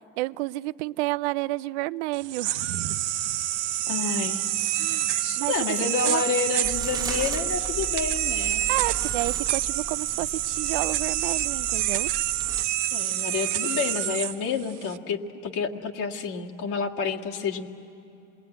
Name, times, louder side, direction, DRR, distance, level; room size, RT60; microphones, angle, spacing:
voice 1, 0.2-2.7 4.8-5.1 5.4-5.5 5.8-6.2 8.7-12.1, right 20 dB, 75° right, 19 dB, 0.5 m, -30 dB
sound 1, 2.1-15.0, right 13 dB, 90° right, 0.9 m, -27 dB
voice 2, 3.9-4.5 5.2-8.6 12.9-17.7, left 5 dB, 60° left, -1 dB, 2.0 m, -29 dB
sound 2, 6.6-12.6, right 4 dB, 10° right, 1.3 m, -38 dB
27.0 x 21.0 x 9.2 m, 2.8 s
supercardioid pair, 105°, 35 cm